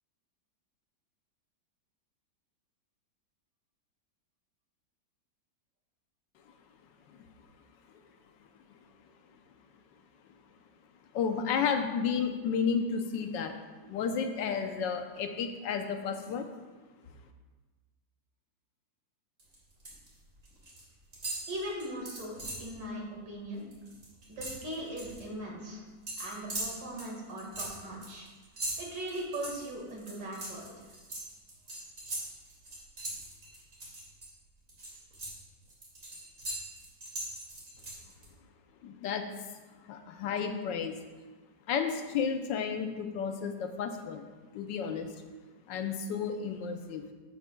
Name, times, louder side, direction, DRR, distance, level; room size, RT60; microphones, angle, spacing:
voice 1, 11.1-13.6 13.8-16.5 38.8-39.3 39.8-41.0 41.7-44.3 44.5-45.1 45.7-47.1, left 6 dB, 90° left, 6 dB, 1.4 m, -32 dB
sound 1, 19.4-20.1 20.4-20.8 21.1-22.7 23.1-23.3 23.6-25.2 26.1-34.3 34.7-38.3, right 1 dB, 45° right, 2.6 m, -40 dB
voice 2, 21.5-23.6 24.3-25.8 26.2-28.3 28.8-30.9, right 1 dB, 80° right, -2 dB, 2.5 m, -39 dB
11.5 x 8.2 x 2.3 m, 1.3 s
omnidirectional pair, 1.9 m